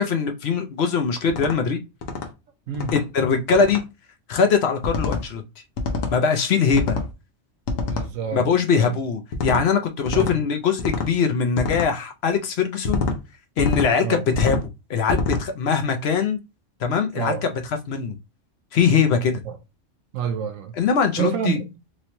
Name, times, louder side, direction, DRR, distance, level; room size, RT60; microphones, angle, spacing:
voice 1, 0.0-1.8 2.9-3.8 4.3-5.4 6.1-7.0 8.3-13.0 13.6-14.6 14.9-16.4 16.8-18.2 18.7-19.4 20.8-21.6, left 6 dB, 65° left, 0.8 m, -21 dB
sound 1, 1.3-1.6 2.0-2.3 2.7-3.0 3.5-3.8 4.8-5.2 5.8-6.2 6.7-7.1 7.7-8.1 9.3-9.6 10.1-10.4 10.8-11.1 11.6-11.9 12.8-13.2 13.6-13.9 14.3-14.7 15.1-15.4, left 3 dB, 85° left, 1.1 m, -26 dB
voice 2, 7.8-8.5 8.7-9.0 10.1-10.4 14.0-14.2 17.2-17.4 19.5-19.6 20.1-20.8 21.2-21.6, right 7 dB, 85° right, 1.0 m, -28 dB
3.1 x 3.0 x 2.8 m
omnidirectional pair, 1.3 m